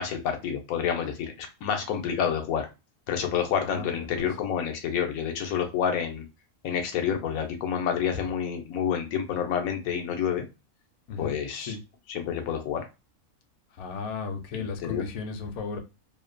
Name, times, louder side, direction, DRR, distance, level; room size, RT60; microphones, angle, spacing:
voice 1, 0.0-2.7 3.1-6.2 6.6-10.4 11.2-11.8 12.1-12.9 14.5-15.0, left 8 dB, 90° left, 1.0 m, -28 dB
voice 2, 3.6-4.3 11.1-11.3 11.6-11.8 13.7-15.8, left 5 dB, 65° left, 0.8 m, -35 dB
2.6 x 2.1 x 2.4 m
omnidirectional pair, 1.4 m